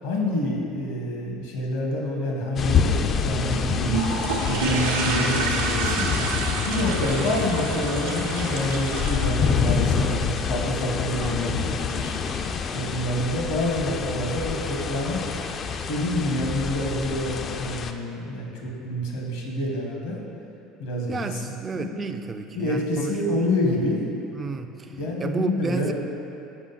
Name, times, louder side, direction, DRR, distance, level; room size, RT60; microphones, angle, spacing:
voice 1, 0.0-3.0 3.2-3.9 4.4-6.1 6.6-12.1 12.7-15.2 15.9-20.2 20.8-21.4 21.7-21.9 22.5-24.0 24.9-25.9, left 1 dB, 75° left, -1 dB, 1.2 m, -27 dB
sound 1, 2.6-17.9, left 6 dB, 45° left, 0.4 m, -27 dB
sound 2, 3.9-10.4, right 3 dB, 85° right, 0.8 m, -29 dB
voice 2, 9.9-10.4 11.2-11.6 21.1-23.4 24.3-25.9, right 5 dB, 30° right, 7 dB, 0.3 m, -32 dB
6.2 x 5.1 x 4.0 m, 2.8 s
hypercardioid pair, 75°, 0 cm